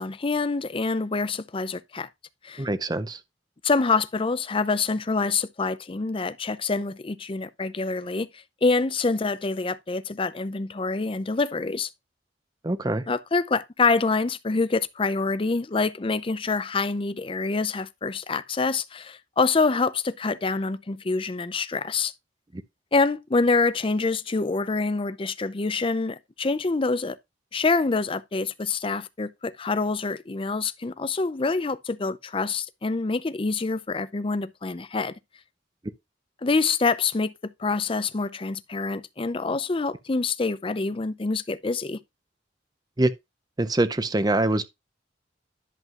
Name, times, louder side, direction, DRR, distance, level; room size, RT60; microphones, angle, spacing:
voice 1, 0.0-2.1 2.4-2.7 3.6-8.3 8.6-11.9 13.1-22.1 22.9-27.2 27.5-35.1 36.4-37.3 37.6-42.0, left 3 dB, 30° left, 0.5 m, -26 dB
voice 2, 2.6-3.2 12.6-13.0 43.0-43.1 43.6-44.7, right 2 dB, 20° right, 0.6 m, -24 dB
11.0 x 7.4 x 2.5 m
head